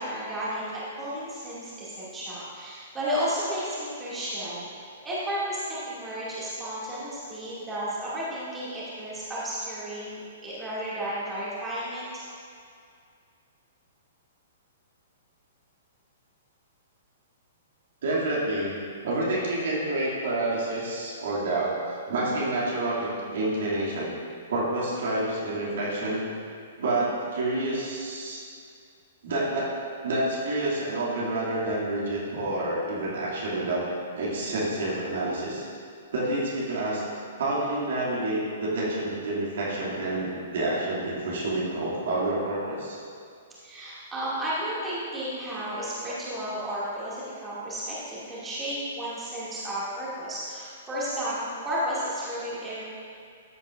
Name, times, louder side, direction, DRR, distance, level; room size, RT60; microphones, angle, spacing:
voice 1, 0.0-4.7 5.0-12.2 43.6-52.8, equal, 15° right, -9 dB, 2.4 m, -33 dB
voice 2, 18.0-18.7 19.0-24.1 24.5-26.3 26.8-28.4 29.2-29.8 30.0-33.9 34.2-35.6 36.1-37.0 37.4-43.0, right 2 dB, 55° right, -7 dB, 2.5 m, -28 dB
13.5 x 8.7 x 2.6 m, 2.3 s
figure-of-eight pair, 110°, 0 cm